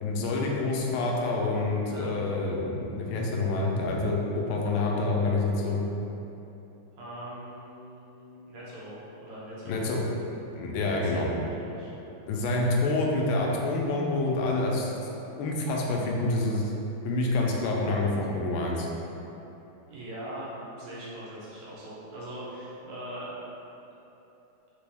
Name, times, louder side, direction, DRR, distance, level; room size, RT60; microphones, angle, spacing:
voice 1, 0.0-5.8 9.7-10.0 10.5-11.3 12.3-14.9 15.4-16.7 17.0-18.9, left 2 dB, 85° left, -1 dB, 1.4 m, -27 dB
voice 2, 1.8-2.1 7.0-9.9 10.8-11.9 12.3-12.4 19.9-23.3, right 1 dB, 80° right, -7 dB, 1.8 m, -41 dB
4.1 x 2.9 x 3.4 m, 3.0 s
omnidirectional pair, 2.3 m